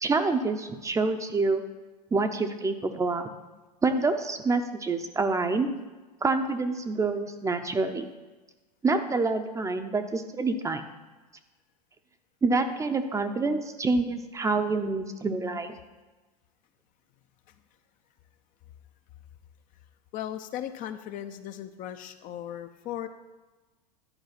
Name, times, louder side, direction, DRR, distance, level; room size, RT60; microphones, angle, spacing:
voice 1, 0.0-1.6 2.1-3.3 3.8-5.8 6.2-8.1 8.8-10.8 12.4-15.7, right 3 dB, 15° right, 8 dB, 0.6 m, -27 dB
voice 2, 20.1-23.1, left 11 dB, 40° left, 9 dB, 0.6 m, -37 dB
11.0 x 4.7 x 5.9 m, 1.2 s
hypercardioid pair, 105°, 21 cm